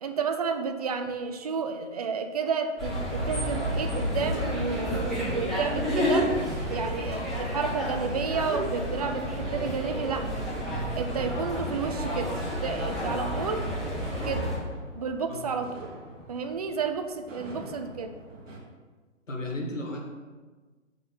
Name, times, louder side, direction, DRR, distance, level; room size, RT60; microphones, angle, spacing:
voice 1, 0.0-6.3 6.7-10.3 10.9-12.3 12.6-13.7 14.3-14.5 14.9-15.9 16.3-18.1, right 5 dB, 35° right, 7 dB, 0.4 m, -31 dB
sound 1, 2.8-14.6, equal, ahead, 2.0 m, -30 dB
sound 2, 3.5-18.6, right 2 dB, 75° right, 1.7 m, -44 dB
voice 2, 19.3-20.0, left 1 dB, 80° left, 0 dB, 1.8 m, -33 dB
6.1 x 4.1 x 5.6 m, 1.3 s
figure-of-eight pair, 140°, 38 cm